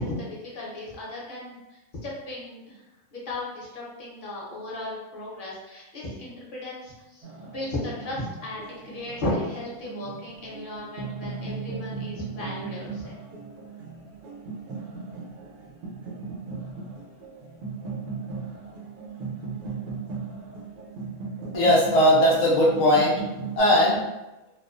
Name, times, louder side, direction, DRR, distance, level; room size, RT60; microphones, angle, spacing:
voice 1, 0.0-2.8 3.1-13.2, left 1 dB, 50° left, -5 dB, 0.8 m, -35 dB
sound 1, 7.2-23.6, right 4 dB, 70° right, 0.9 m, -37 dB
voice 2, 21.5-23.2 23.6-24.0, equal, 75° left, -4 dB, 0.3 m, -19 dB
2.4 x 2.1 x 2.4 m, 1.0 s
omnidirectional pair, 1.4 m